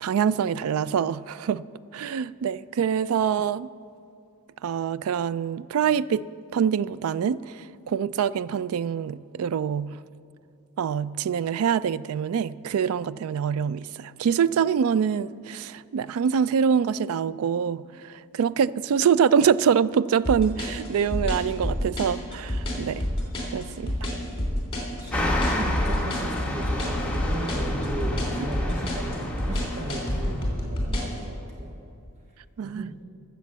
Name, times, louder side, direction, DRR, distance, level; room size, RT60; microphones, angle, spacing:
voice 1, 0.0-1.6 1.9-3.7 4.6-6.3 6.5-10.0 10.8-23.0 23.5-23.9 32.6-32.9, right 7 dB, 70° right, 0.3 m, -25 dB
sound 1, 20.2-31.2, left 1 dB, 25° left, 2.9 m, -28 dB
voice 2, 25.0-31.8 32.6-32.9, right 2 dB, 30° right, 1.1 m, -36 dB
sound 2, 25.1-30.5, left 1 dB, 5° left, 1.3 m, -30 dB
14.0 x 7.1 x 7.3 m
head